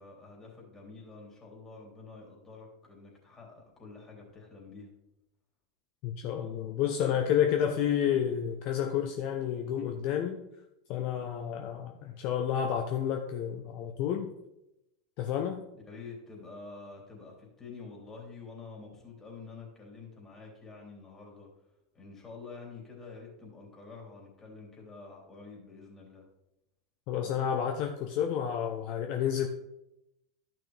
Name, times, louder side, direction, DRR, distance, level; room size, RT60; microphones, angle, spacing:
voice 1, 0.0-4.9 15.7-21.5 21.9-26.2, left 4 dB, 20° left, -2 dB, 3.3 m, -48 dB
voice 2, 6.0-10.4 10.9-14.3 15.2-15.6 27.1-29.5, left 9 dB, 55° left, 4 dB, 0.8 m, -30 dB
12.0 x 6.0 x 3.4 m, 0.87 s
hypercardioid pair, 100°, 2 cm